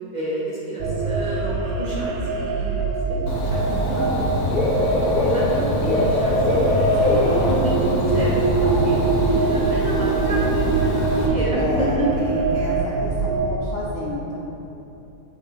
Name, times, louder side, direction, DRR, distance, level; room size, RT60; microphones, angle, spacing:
voice 1, 0.1-4.3 4.9-6.9 7.4-7.9 8.1-12.1, right 1 dB, 35° right, -6 dB, 0.8 m, -30 dB
sound 1, 0.8-13.6, right 4 dB, 65° right, 0.8 m, -24 dB
Dog / Bird, 3.3-11.3, left 1 dB, 85° left, 1.4 m, -22 dB
voice 2, 7.0-7.8 11.5-14.4, left 1 dB, 60° left, -5 dB, 0.7 m, -31 dB
7.8 x 3.8 x 3.4 m, 2.9 s
omnidirectional pair, 1.6 m